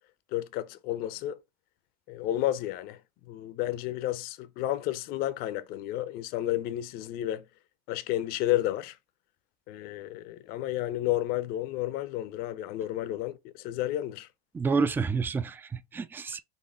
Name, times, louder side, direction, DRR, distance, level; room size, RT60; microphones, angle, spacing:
voice 1, 0.3-1.4 2.1-7.4 7.9-9.0 9.7-14.3, left 14 dB, 50° left, 0.5 m, -31 dB
voice 2, 14.5-16.4, right 4 dB, 10° right, 0.3 m, -29 dB
4.3 x 2.8 x 3.9 m
hypercardioid pair, 80°, 20 cm